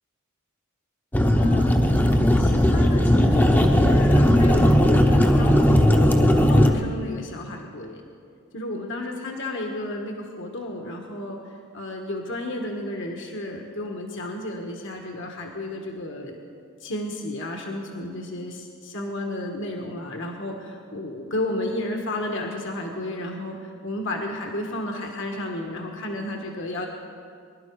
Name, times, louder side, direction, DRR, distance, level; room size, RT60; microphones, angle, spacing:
sound 1, 1.1-6.7, equal, 10° left, 0.8 m, -17 dB
voice 1, 1.3-1.7 2.4-8.0 8.5-11.4 11.7-16.4 16.8-26.9, left 1 dB, 65° left, 2 dB, 1.5 m, -32 dB
21.5 x 12.0 x 4.8 m, 2.2 s
head